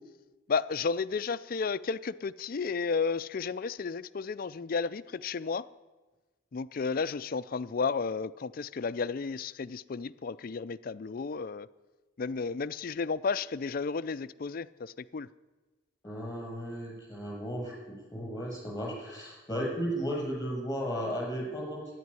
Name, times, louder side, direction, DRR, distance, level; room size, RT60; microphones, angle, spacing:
voice 1, 0.5-5.7 6.5-11.7 12.2-15.3, left 5 dB, 50° left, 15 dB, 0.4 m, -32 dB
voice 2, 16.0-21.8, equal, 15° left, -2 dB, 6.4 m, -35 dB
12.5 x 10.5 x 9.7 m, 1.2 s
head